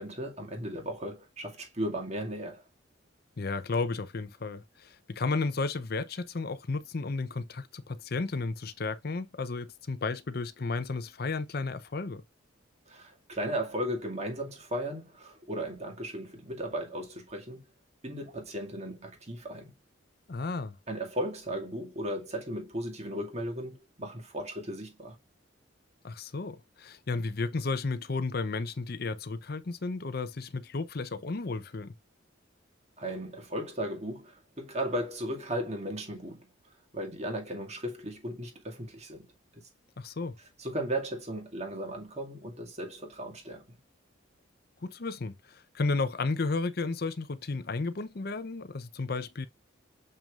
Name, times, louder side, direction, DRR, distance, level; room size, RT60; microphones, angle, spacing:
voice 1, 0.0-2.6 12.9-17.6 18.0-19.7 20.9-25.2 33.0-36.5 36.9-39.7 40.6-43.8, equal, 35° right, 2.1 m, -36 dB
voice 2, 3.4-12.2 20.3-20.8 26.0-31.9 40.0-40.3 44.8-49.5, left 3 dB, 50° left, 0.6 m, -33 dB
6.9 x 6.0 x 2.4 m
head